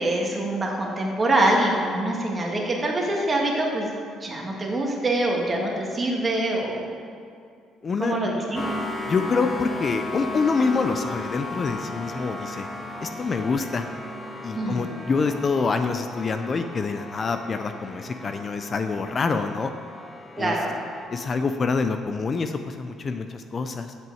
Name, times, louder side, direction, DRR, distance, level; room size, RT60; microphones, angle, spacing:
voice 1, 0.0-3.9 4.2-6.8 8.0-8.7 14.5-14.8 20.4-20.7, right 1 dB, 25° right, -1 dB, 1.9 m, -24 dB
voice 2, 7.8-8.2 9.1-12.7 13.0-13.9 14.4-19.7 20.4-20.6 21.1-23.9, left 4 dB, 35° left, 8 dB, 0.5 m, -26 dB
sound 1, 8.5-21.1, left 2 dB, 15° left, 1.0 m, -35 dB
7.6 x 6.0 x 7.8 m, 2.3 s
cardioid pair, 110°, 0 cm